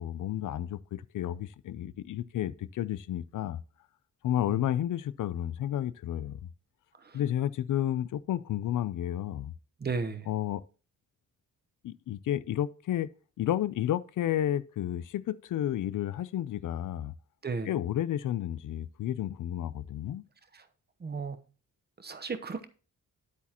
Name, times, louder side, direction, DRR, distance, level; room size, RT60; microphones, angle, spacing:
voice 1, 0.0-3.6 4.2-6.5 7.1-9.5 10.3-10.6 11.8-13.1 13.4-17.1 17.6-20.3, left 11 dB, 75° left, 0.5 m, -31 dB
voice 2, 9.8-10.3 17.4-17.7 20.5-20.6 21.0-21.4 22.0-22.6, right 4 dB, 30° right, 0.9 m, -34 dB
9.6 x 8.3 x 2.9 m
wide cardioid pair, 120°, 31 cm